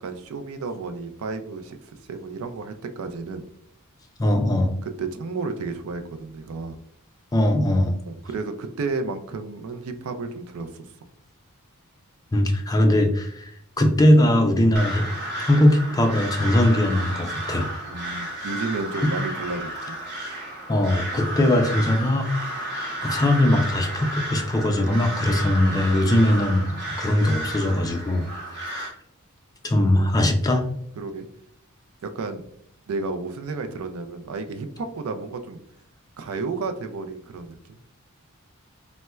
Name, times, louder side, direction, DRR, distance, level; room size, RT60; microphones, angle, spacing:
voice 1, 0.0-1.8 2.0-3.4 4.8-6.8 8.1-10.9 17.9-20.0 25.1-25.4 31.0-31.3 32.0-32.4 32.9-35.6 36.2-37.8, right 3 dB, 70° right, 8 dB, 0.4 m, -32 dB
voice 2, 4.2-4.7 7.3-7.9 12.3-13.5 13.8-15.1 15.4-17.7 20.7-22.3 22.7-26.7 27.0-28.3 28.6-28.9 29.6-30.6, left 1 dB, 15° left, 4 dB, 0.3 m, -20 dB
Crow, 14.7-28.9, right 1 dB, 50° right, 0.9 m, -32 dB
4.2 x 2.1 x 2.2 m, 0.71 s
head